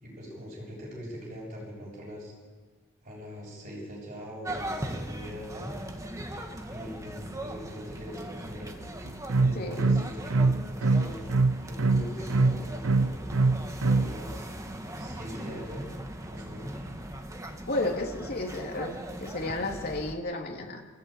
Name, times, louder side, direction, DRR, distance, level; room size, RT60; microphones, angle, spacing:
voice 1, 0.0-2.3 3.0-5.7 6.7-8.8 9.3-11.3 11.6-13.1 13.8-14.5 15.0-15.9 16.3-16.9, equal, 40° right, -4 dB, 7.1 m, -41 dB
sound 1, 4.4-20.2, right 1 dB, 15° right, 1.7 m, -39 dB
sound 2, 9.1-14.1, right 3 dB, 85° right, 0.7 m, -23 dB
voice 2, 17.7-20.9, left 2 dB, 50° left, 1 dB, 3.4 m, -32 dB
27.0 x 16.0 x 9.1 m, 1.5 s
head